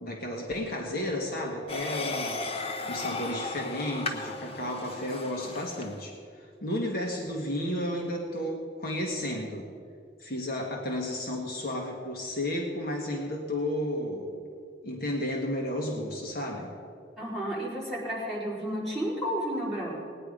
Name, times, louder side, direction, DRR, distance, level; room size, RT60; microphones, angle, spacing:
voice 1, 0.0-2.5 2.9-9.7 10.2-14.3 14.8-16.7, left 1 dB, 55° left, 0 dB, 1.4 m, -32 dB
sound 1, 1.7-6.0, left 3 dB, 30° left, 0.9 m, -35 dB
voice 2, 17.2-19.9, equal, ahead, -8 dB, 4.1 m, -32 dB
18.0 x 9.7 x 5.1 m, 2.4 s
head